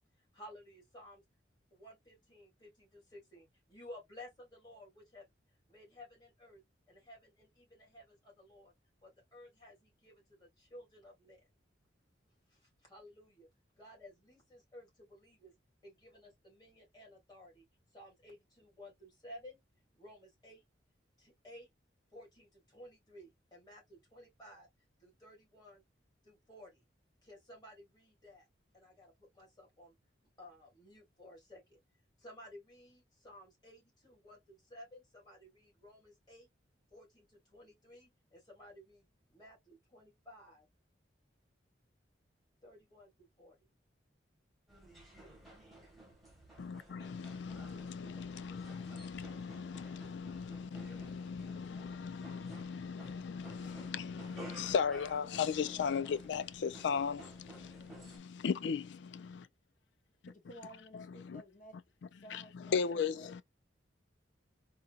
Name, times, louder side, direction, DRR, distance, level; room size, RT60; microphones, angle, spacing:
voice 1, 0.3-1.2 1.7-5.3 5.7-6.6 6.9-8.7 9.0-11.5 12.5-13.5 13.7-15.5 15.8-17.6 17.9-19.6 19.9-20.6 21.2-21.7 22.1-24.7 25.0-25.8 26.2-26.8 27.2-28.5 28.7-30.0 30.4-31.8 32.2-36.5 36.9-40.7 42.6-43.7, left 1 dB, 25° left, 2.3 m, -55 dB
sound 1, 44.7-58.2, right 1 dB, ahead, 1.3 m, -55 dB
voice 2, 46.6-59.5 60.9-61.4 62.3-63.4, left 6 dB, 70° left, 0.4 m, -37 dB
voice 3, 60.3-61.8 62.2-63.3, right 1 dB, 45° left, 1.1 m, -54 dB
3.7 x 2.7 x 2.3 m
head